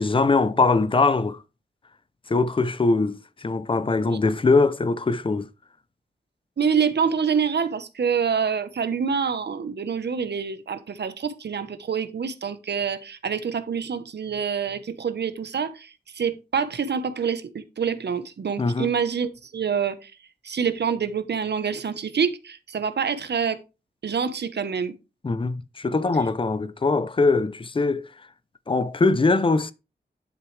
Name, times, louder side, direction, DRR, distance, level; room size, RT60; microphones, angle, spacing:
voice 1, 0.0-1.4 2.3-5.5 18.6-18.9 25.2-28.1 28.7-29.7, left 3 dB, 30° left, 0.6 m, -22 dB
voice 2, 6.6-20.1 20.4-23.6 24.0-24.9, right 6 dB, 75° right, 1.0 m, -26 dB
11.0 x 6.1 x 3.3 m
wide cardioid pair, 135°, 18 cm